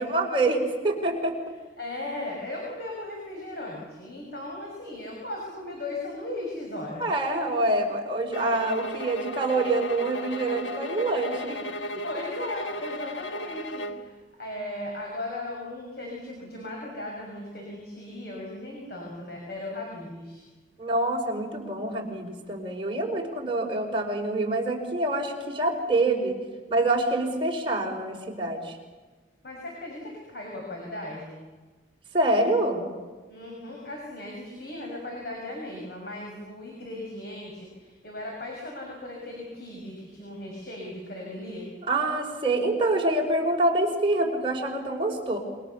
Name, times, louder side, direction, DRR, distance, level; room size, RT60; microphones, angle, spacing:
voice 1, 0.0-1.5 7.0-11.6 20.8-26.4 26.7-28.8 32.1-32.9 41.9-45.4, right 2 dB, 30° right, 1 dB, 4.9 m, -26 dB
voice 2, 1.5-7.0 7.3-7.4 12.0-20.4 29.4-31.4 33.3-41.7, left 1 dB, 60° left, -2 dB, 6.5 m, -37 dB
sound 1, 8.3-14.1, left 1 dB, 85° left, 1.8 m, -35 dB
27.5 x 24.0 x 7.1 m, 1.3 s
head